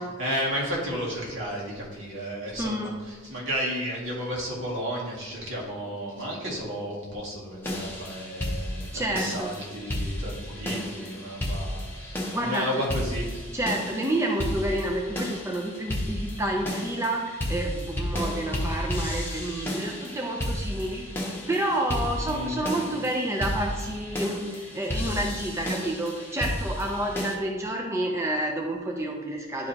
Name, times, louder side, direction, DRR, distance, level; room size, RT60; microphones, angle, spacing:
voice 1, 0.0-13.5 22.2-22.6, equal, 70° right, -5 dB, 2.1 m, -33 dB
voice 2, 2.6-2.9 8.9-9.6 12.3-12.8 13.5-21.1 21.5-29.7, right 1 dB, 15° right, 0 dB, 0.5 m, -29 dB
sound 1, 7.6-27.3, left 1 dB, 10° left, 0.9 m, -33 dB
10.5 x 4.7 x 2.8 m, 1.4 s
head